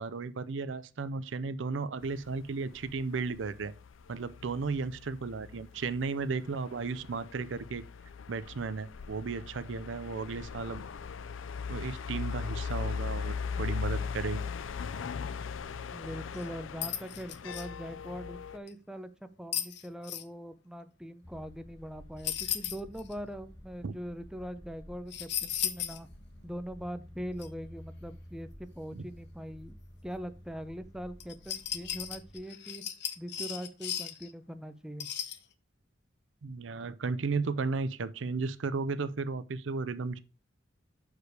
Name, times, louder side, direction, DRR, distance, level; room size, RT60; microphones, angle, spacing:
voice 1, 0.0-3.7 4.1-7.8 8.3-10.8 11.7-14.5 23.8-23.9 28.9-29.0 36.4-40.2, right 4 dB, 70° right, 0.5 m, -34 dB
sound 1, 2.0-18.6, left 6 dB, 90° left, 0.5 m, -39 dB
voice 2, 15.9-26.1 26.4-29.8 30.0-32.8 33.2-35.1, equal, 5° right, 0.5 m, -42 dB
sound 2, 16.3-16.4 16.8-17.7 18.7-18.8 19.5-20.2 22.2-23.1 25.1-26.0 26.4-26.5 27.4-27.5 31.2-34.3 35.0-35.4, left 10 dB, 60° left, 0.8 m, -35 dB
sound 3, 21.2-32.4, equal, 20° left, 1.9 m, -51 dB
6.5 x 4.9 x 4.8 m
head